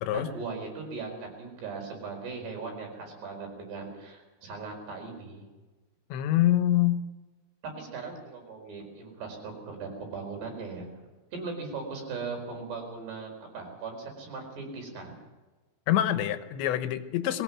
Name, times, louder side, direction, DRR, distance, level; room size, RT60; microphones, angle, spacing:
voice 1, 0.1-5.4 7.8-10.9 11.3-15.1, right 4 dB, 70° right, 2 dB, 6.7 m, -39 dB
voice 2, 6.1-7.0 15.9-17.4, left 13 dB, 85° left, 10 dB, 3.3 m, -25 dB
22.0 x 17.0 x 7.4 m, 1.2 s
omnidirectional pair, 5.1 m